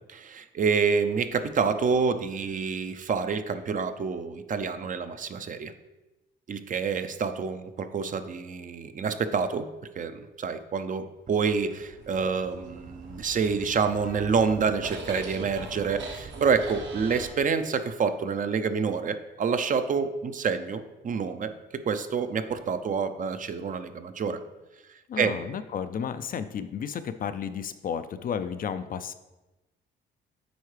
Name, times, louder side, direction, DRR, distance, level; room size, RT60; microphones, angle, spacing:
voice 1, 0.1-5.7 6.5-9.7 10.0-24.4 25.2-25.4, right 5 dB, 40° right, 9 dB, 0.5 m, -28 dB
sound 1, 11.3-17.3, right 3 dB, 65° right, 1.0 m, -42 dB
voice 2, 25.1-29.1, left 7 dB, 45° left, 11 dB, 0.4 m, -33 dB
8.0 x 4.6 x 3.2 m, 1.1 s
cardioid pair, 90°, 20 cm